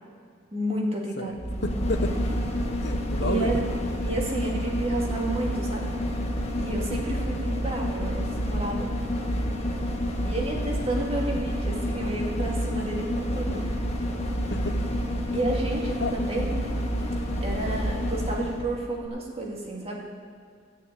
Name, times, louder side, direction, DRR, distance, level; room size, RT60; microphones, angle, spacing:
voice 1, 0.5-1.4 3.2-3.6 4.0-5.9 6.5-8.9 10.2-13.6 15.3-16.6 17.4-20.0, right 1 dB, 35° right, -1 dB, 2.3 m, -31 dB
sound 1, 1.3-18.7 19.0-19.1, equal, 35° left, 1.4 m, -29 dB
voice 2, 1.6-2.1 2.8-4.0 14.5-14.8 16.0-16.1, left 2 dB, 60° left, 6 dB, 1.1 m, -31 dB
14.5 x 6.4 x 9.1 m, 2.1 s
head